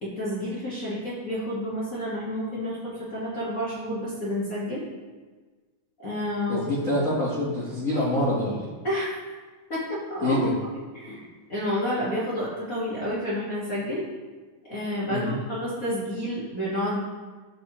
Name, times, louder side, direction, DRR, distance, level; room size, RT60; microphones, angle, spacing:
voice 1, 0.0-4.8 6.0-6.6 8.8-9.2 9.7-10.5 10.9-14.1 14.7-17.0, equal, 40° left, -8 dB, 1.3 m, -30 dB
voice 2, 6.5-8.6 10.2-10.5 15.1-15.4, left 1 dB, 70° left, -8 dB, 0.8 m, -25 dB
10.0 x 6.5 x 3.0 m, 1.4 s
omnidirectional pair, 3.7 m